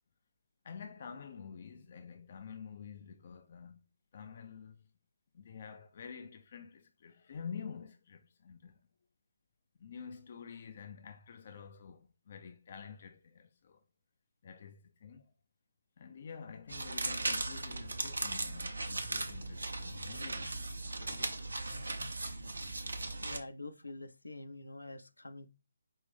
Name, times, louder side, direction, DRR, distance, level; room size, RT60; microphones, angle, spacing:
voice 1, 0.6-3.8 4.1-4.8 5.3-8.8 9.8-13.8 14.4-15.3 16.0-20.6 20.9-21.5, left 6 dB, 40° left, 0.4 m, -48 dB
sound 1, 16.7-23.4, right 2 dB, 65° right, 0.8 m, -38 dB
voice 2, 23.2-25.5, left 2 dB, 70° left, 0.7 m, -46 dB
5.3 x 2.6 x 3.5 m
figure-of-eight pair, 145°, 0 cm